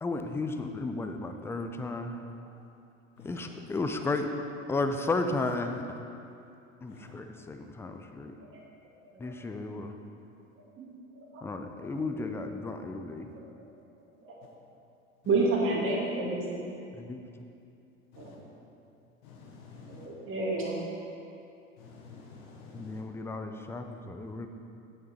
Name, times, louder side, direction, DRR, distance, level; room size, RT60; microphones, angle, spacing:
voice 1, 0.0-2.3 3.2-4.3 4.7-5.8 6.8-8.3 9.2-9.9 11.4-13.3 16.9-17.2 22.7-24.5, left 3 dB, 5° left, 6 dB, 0.4 m, -34 dB
voice 2, 15.3-16.6 18.2-18.3 19.9-20.8, right 3 dB, 30° right, -3 dB, 1.9 m, -29 dB
voice 3, 19.2-20.1 21.8-23.0, left 5 dB, 50° left, -1 dB, 1.5 m, -50 dB
9.1 x 8.0 x 4.2 m, 2.6 s
figure-of-eight pair, 75°, 40 cm